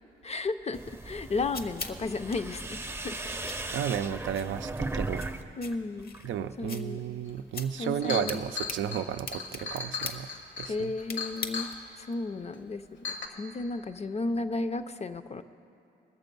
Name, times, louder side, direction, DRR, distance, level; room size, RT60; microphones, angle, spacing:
voice 1, 0.2-0.8 1.0-3.2 5.6-6.1 6.6-7.0 7.8-8.5 10.7-11.7 12.0-15.4, left 3 dB, 35° left, 11 dB, 0.5 m, -33 dB
sound 1, 0.7-5.4 5.7-6.3, right 2 dB, 15° right, 0.5 m, -37 dB
sound 2, 1.0-12.0, left 4 dB, 50° left, 0.9 m, -44 dB
voice 2, 3.7-5.2 6.2-10.3 10.6-10.9, right 9 dB, 85° right, 10 dB, 0.4 m, -33 dB
Chink clink, 7.4-7.5 7.8-11.8 12.5-12.6 13.0-13.3, left 5 dB, 70° left, 1.2 m, -36 dB
20.0 x 6.9 x 5.3 m, 2.7 s
cardioid pair, 85°, 19 cm